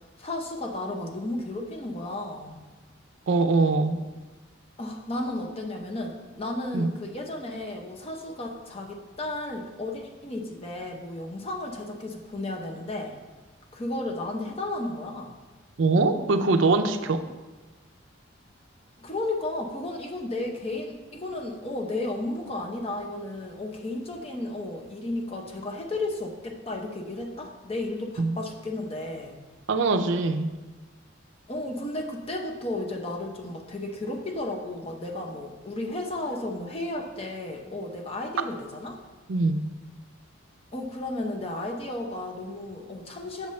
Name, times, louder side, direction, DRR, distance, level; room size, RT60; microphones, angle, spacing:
voice 1, 0.0-2.6 4.8-13.2 13.7-15.4 19.0-29.4 31.5-39.0 40.7-43.5, left 2 dB, 30° left, 1 dB, 0.7 m, -33 dB
voice 2, 3.3-4.0 6.7-6.9 15.8-17.2 28.2-28.4 29.7-30.5 39.3-39.6, right 3 dB, 70° right, 8 dB, 0.5 m, -23 dB
7.0 x 6.6 x 3.2 m, 1.2 s
head